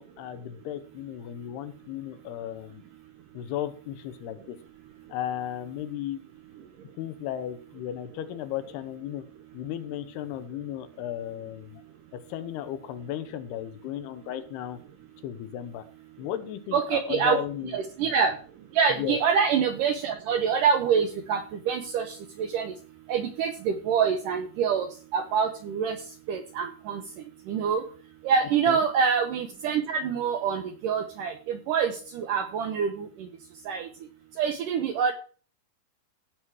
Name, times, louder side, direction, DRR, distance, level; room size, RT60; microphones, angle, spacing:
voice 1, 0.0-2.8 3.3-4.6 5.1-6.2 7.0-9.2 9.5-11.8 12.1-14.8 15.2-15.8 16.2-17.8 18.0-18.1 18.9-19.2 28.7-28.8, left 11 dB, 80° left, 12 dB, 2.9 m, -35 dB
voice 2, 16.7-17.4 17.7-18.3 18.7-22.7 23.1-24.9 25.1-26.0 26.3-27.0 27.5-27.8 28.2-33.3 33.7-33.9 34.4-35.1, right 6 dB, 80° right, 7 dB, 2.0 m, -26 dB
16.0 x 6.2 x 4.7 m, 0.41 s
omnidirectional pair, 4.8 m